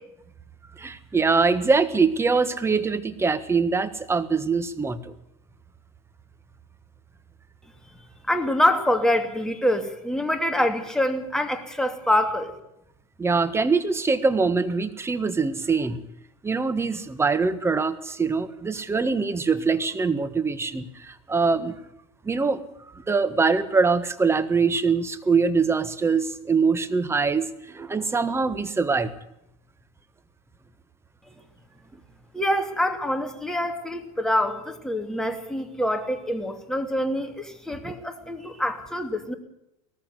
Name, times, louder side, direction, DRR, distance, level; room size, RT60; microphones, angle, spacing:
voice 1, 0.8-5.1 13.2-16.0 16.4-21.8 22.2-22.6 22.9-29.1 37.8-37.9, right 4 dB, 15° right, 12 dB, 1.5 m, -23 dB
voice 2, 8.3-12.5 32.3-39.3, left 1 dB, 5° left, 5 dB, 2.8 m, -25 dB
18.5 x 14.5 x 9.6 m, 0.80 s
hypercardioid pair, 100°, 17 cm